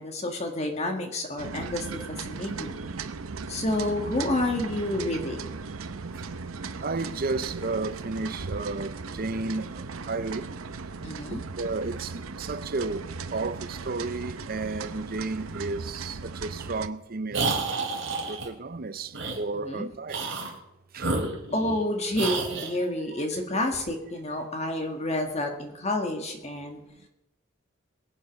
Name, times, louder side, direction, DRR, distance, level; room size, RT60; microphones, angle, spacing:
voice 1, 0.0-2.7 3.5-5.4 11.0-11.4 19.5-19.9 21.5-26.8, left 1 dB, 30° left, 1.7 m, -29 dB
sound 1, 1.4-16.9, right 4 dB, 90° right, 0.7 m, -37 dB
voice 2, 6.8-10.5 11.3-17.5 18.3-20.3 20.9-21.1 23.2-23.3 27.0-27.1, right 3 dB, 45° right, 0.7 m, -33 dB
sound 2, 17.3-18.5 19.1-19.4 20.1-20.6 21.0-21.8 22.2-22.7, right 3 dB, 65° right, 2.9 m, -30 dB
22.0 x 8.0 x 5.3 m
head